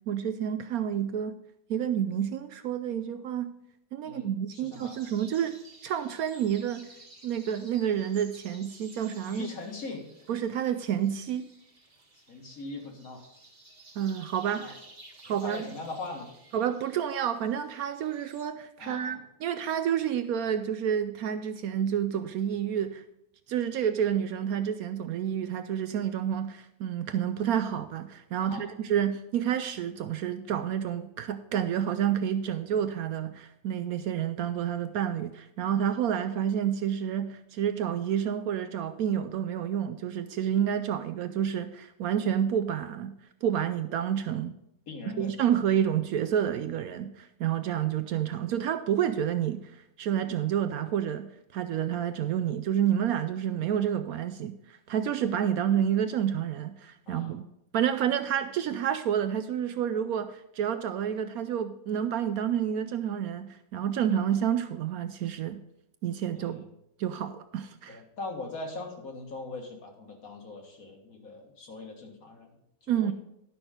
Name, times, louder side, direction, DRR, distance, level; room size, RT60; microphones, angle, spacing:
voice 1, 0.1-1.4 1.7-3.6 3.9-5.6 5.8-6.9 7.2-9.5 10.3-11.5 14.0-14.8 15.2-15.7 16.5-23.0 23.5-43.1 43.4-44.5 45.2-51.3 51.5-57.4 57.7-65.6 66.0-66.6 67.0-68.0 72.9-73.1, right 9 dB, 80° right, 10 dB, 0.8 m, -29 dB
voice 2, 4.0-5.0 9.2-10.0 12.1-13.2 14.6-14.7 15.3-16.3 18.8-19.2 28.4-28.7 44.9-45.4 55.2-55.3 57.0-57.4 66.3-66.7 67.9-72.5 72.8-73.1, left 3 dB, 50° left, 2 dB, 2.1 m, -41 dB
sound 1, 4.7-18.4, right 2 dB, 25° right, 1.5 m, -54 dB
11.5 x 6.1 x 5.0 m, 0.80 s
omnidirectional pair, 2.0 m